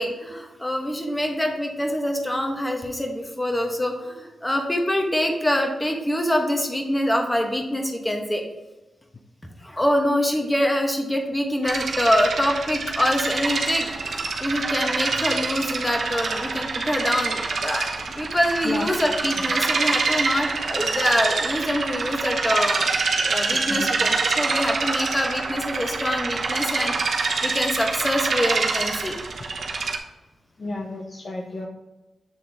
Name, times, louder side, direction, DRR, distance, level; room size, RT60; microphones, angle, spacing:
voice 1, 0.0-8.4 9.6-22.9 23.2-29.2, equal, 15° left, 3 dB, 1.1 m, -25 dB
sound 1, 11.6-30.0, right 4 dB, 65° right, 0.7 m, -26 dB
voice 2, 23.7-24.1 30.6-31.7, left 2 dB, 45° left, 2 dB, 0.6 m, -32 dB
7.9 x 3.6 x 3.5 m, 1.1 s
cardioid pair, 75°, 0 cm